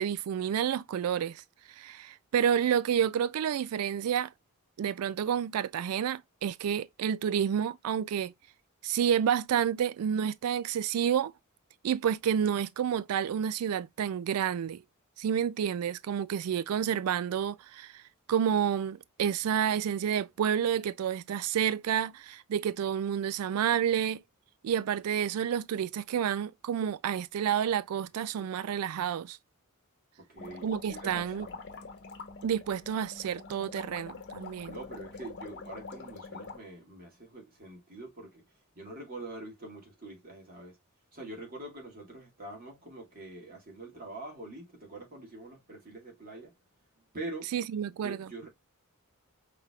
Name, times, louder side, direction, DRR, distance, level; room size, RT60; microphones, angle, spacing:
voice 1, 0.0-1.4 1.7-4.3 4.8-8.3 8.8-11.3 11.8-14.8 15.2-18.0 18.3-24.2 24.6-29.4 30.6-31.5 32.4-34.8 47.5-48.3, right 8 dB, 85° right, 0.3 m, -29 dB
voice 2, 30.2-31.6 34.7-38.4 38.7-40.8 41.1-46.5 47.1-47.5 48.0-48.5, right 2 dB, 40° right, 2.3 m, -44 dB
sound 1, 30.4-36.6, left 4 dB, 55° left, 1.0 m, -45 dB
5.7 x 3.4 x 2.3 m
head